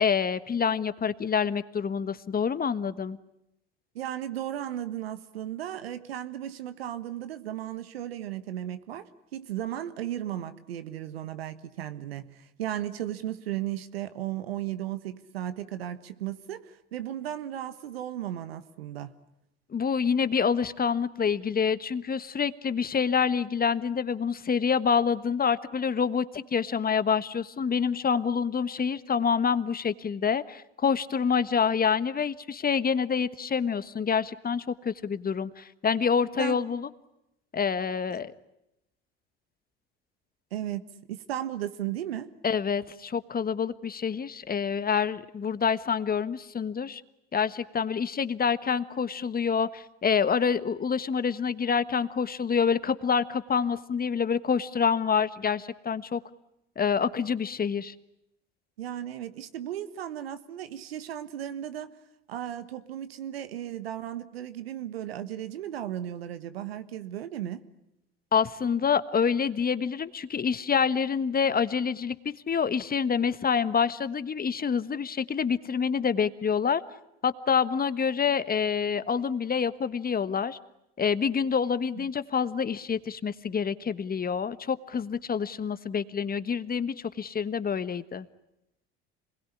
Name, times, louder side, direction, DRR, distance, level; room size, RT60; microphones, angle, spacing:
voice 1, 0.0-3.2 19.7-36.9 37.5-38.3 42.4-47.0 47.3-56.2 56.8-57.9 68.3-76.8 77.2-80.6 81.0-88.3, left 6 dB, 30° left, 14 dB, 1.4 m, -27 dB
voice 2, 3.9-19.2 36.4-36.6 38.1-38.2 40.5-40.8 41.1-42.3 58.8-61.9 62.3-67.6 81.9-82.0, right 11 dB, 90° right, 12 dB, 1.4 m, -35 dB
27.0 x 21.0 x 9.9 m, 0.86 s
hypercardioid pair, 70°, 29 cm